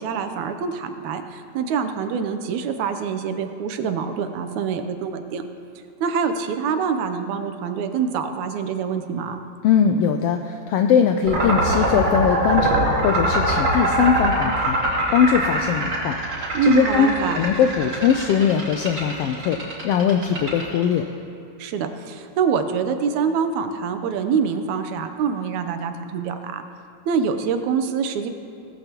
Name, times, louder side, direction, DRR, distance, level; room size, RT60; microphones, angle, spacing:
voice 1, 0.0-5.4 6.0-9.4 16.5-17.4 21.6-26.6 27.1-28.3, right 6 dB, 80° right, 7 dB, 2.2 m, -25 dB
voice 2, 9.6-21.1, left 7 dB, 85° left, 6 dB, 1.3 m, -21 dB
sound 1, 11.2-21.0, right 1 dB, 45° right, 3.8 m, -23 dB
18.0 x 15.0 x 2.9 m, 2.7 s
omnidirectional pair, 3.3 m